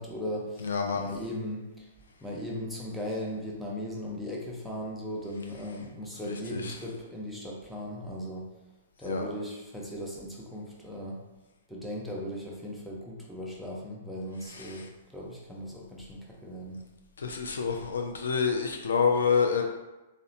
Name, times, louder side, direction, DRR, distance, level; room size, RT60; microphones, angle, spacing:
voice 1, 0.0-1.9 2.2-8.5 9.0-11.2 11.7-16.8, equal, ahead, -4 dB, 0.6 m, -38 dB
voice 2, 0.6-1.1 6.3-6.8 9.1-9.3 14.5-14.9 17.2-19.6, left 5 dB, 75° left, 3 dB, 0.3 m, -28 dB
2.8 x 2.1 x 2.6 m, 1.1 s
hypercardioid pair, 110°, 0 cm